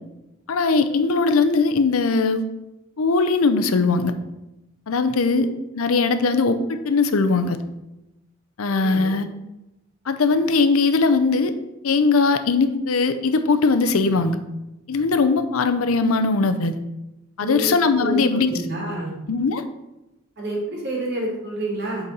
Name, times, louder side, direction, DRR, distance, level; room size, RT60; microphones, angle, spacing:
voice 1, 0.5-2.4 3.0-4.1 4.9-5.5 5.7-7.6 8.6-9.3 10.1-11.5 11.8-14.4 14.9-16.8 17.4-18.5 19.3-19.6, left 4 dB, 80° left, 10 dB, 0.6 m, -20 dB
voice 2, 17.4-17.7 18.0-19.1 20.4-22.1, right 1 dB, 55° right, -2 dB, 1.9 m, -29 dB
8.0 x 4.0 x 4.1 m, 0.93 s
head